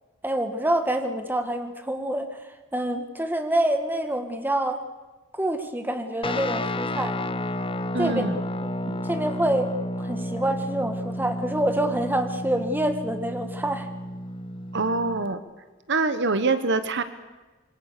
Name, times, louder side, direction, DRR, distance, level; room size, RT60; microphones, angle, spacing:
voice 1, 0.2-2.4 2.7-4.8 5.3-7.2 8.0-8.2 8.6-8.7 9.0-13.9, right 1 dB, 10° right, 7 dB, 1.6 m, -26 dB
Guitar, 6.2-15.3, left 1 dB, 25° left, 0.8 m, -31 dB
voice 2, 7.9-8.4 8.8-9.0 14.7-15.4 15.9-17.0, right 3 dB, 60° right, 11 dB, 1.3 m, -25 dB
26.0 x 23.0 x 6.8 m, 1.2 s
head